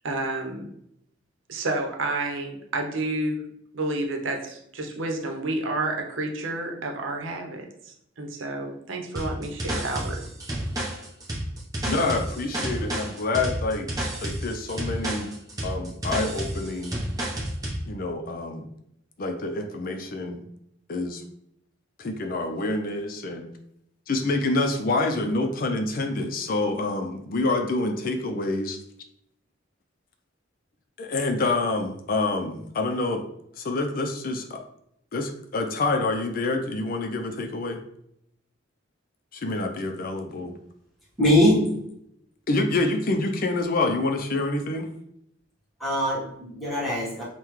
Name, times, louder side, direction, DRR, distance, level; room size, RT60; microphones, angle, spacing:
voice 1, 0.0-0.7 1.5-3.4 3.7-10.3, right 2 dB, 90° right, 3 dB, 0.8 m, -30 dB
sound 1, 9.2-17.8, right 1 dB, 20° right, 0.8 m, -30 dB
voice 2, 11.8-13.9 14.2-15.3 15.6-17.0 17.9-18.7 19.2-20.4 20.9-21.2 22.0-23.5 24.1-28.8 31.0-33.2 33.6-34.6 35.1-37.8 39.3-40.5 42.5-44.9, left 2 dB, 50° left, 6 dB, 0.4 m, -27 dB
voice 3, 41.2-41.8 45.8-47.2, left 1 dB, ahead, -8 dB, 1.3 m, -22 dB
5.6 x 2.2 x 3.1 m, 0.75 s
head